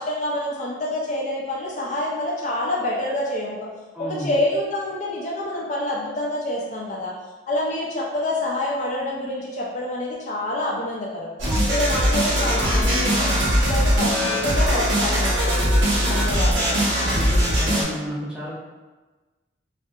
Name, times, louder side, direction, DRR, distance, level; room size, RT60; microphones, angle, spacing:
voice 1, 0.0-3.6 4.0-7.1 7.5-11.3 11.7-14.1 14.4-16.8, left 1 dB, 40° left, -4 dB, 0.4 m, -27 dB
voice 2, 3.9-4.4 17.1-18.5, equal, 5° right, -8 dB, 0.6 m, -31 dB
sound 1, 11.4-17.8, equal, 85° right, 0.8 m, -20 dB
2.6 x 2.4 x 2.3 m, 1.2 s
head